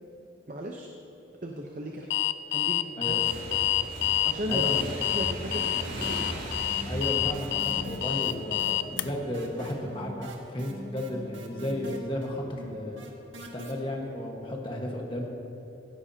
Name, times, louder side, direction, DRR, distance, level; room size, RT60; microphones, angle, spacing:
voice 1, 0.5-0.9 1.4-2.1 2.5-3.2 3.5-4.7 5.0-5.8 6.1-6.3, right 1 dB, 40° right, 1 dB, 0.8 m, -36 dB
Alarm, 2.1-9.0, left 13 dB, 70° left, 0.3 m, -27 dB
Motorcycle / Engine, 3.1-9.4, right 1 dB, 65° right, 3.7 m, -38 dB
voice 2, 4.5-4.9 5.4-5.6 6.8-13.0 13.4-15.3, left 1 dB, 25° left, 0 dB, 1.5 m, -34 dB
sound 1, 5.8-6.3 6.6-13.7, right 1 dB, 80° right, 1.6 m, -42 dB
17.5 x 16.0 x 2.9 m, 3.0 s
head